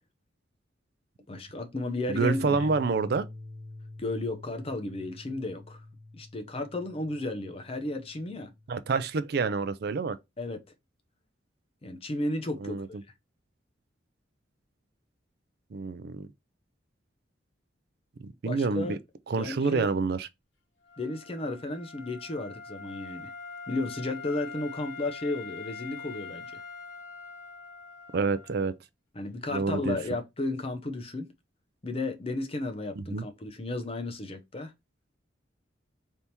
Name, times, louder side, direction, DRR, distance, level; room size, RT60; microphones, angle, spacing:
voice 1, 1.3-2.7 4.0-5.8 6.1-8.5 10.4-10.6 11.8-12.8 18.4-19.0 19.3-19.9 21.0-23.3 23.7-26.6 29.1-31.3 31.8-34.7, left 2 dB, 30° left, 0.6 m, -33 dB
voice 2, 2.1-3.3 8.7-10.2 12.6-12.9 15.7-16.3 18.4-19.0 19.3-20.3 28.1-28.7 29.5-30.0 33.0-33.2, right 4 dB, 55° right, 0.4 m, -27 dB
sound 1, 2.2-9.2, left 2 dB, 5° right, 1.3 m, -46 dB
Wind instrument woodwind instrument, 20.8-28.6, left 5 dB, 80° left, 1.1 m, -43 dB
3.4 x 2.8 x 4.2 m
head